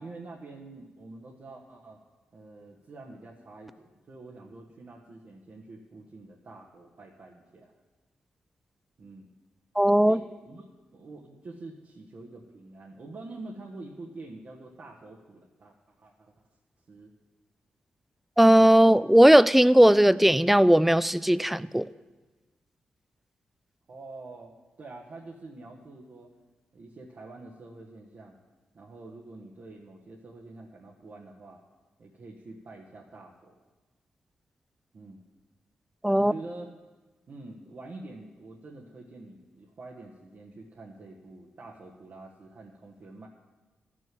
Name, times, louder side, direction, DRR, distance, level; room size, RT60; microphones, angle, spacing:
voice 1, 0.0-2.0 2.3-7.7 9.0-9.3 10.1-10.6 10.9-16.3 16.9-17.1 23.9-26.3 26.7-28.4 28.7-31.6 32.0-33.6 34.9-35.2 36.1-36.7 37.3-43.3, right 2 dB, 60° right, -3 dB, 1.3 m, -46 dB
voice 2, 9.8-10.2 18.4-21.9 36.0-36.3, right 1 dB, 5° right, 17 dB, 0.4 m, -18 dB
12.0 x 6.3 x 7.7 m, 1.2 s
supercardioid pair, 50°, 4 cm